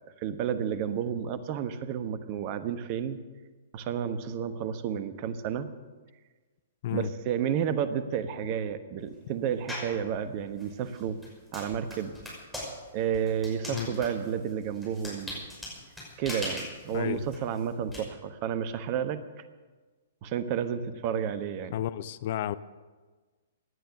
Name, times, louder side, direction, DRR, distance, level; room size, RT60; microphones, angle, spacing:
voice 1, 0.2-3.2 3.7-5.7 6.9-11.2 11.5-12.1 12.9-15.4 16.2-19.2 20.2-21.7, right 8 dB, 35° right, 11 dB, 1.1 m, -31 dB
sound 1, 9.7-10.0 10.6-18.0, left 1 dB, ahead, 5.9 m, -40 dB
voice 2, 21.7-22.5, left 11 dB, 45° left, 16 dB, 0.5 m, -31 dB
17.5 x 10.5 x 6.7 m, 1.3 s
figure-of-eight pair, 115°, 0 cm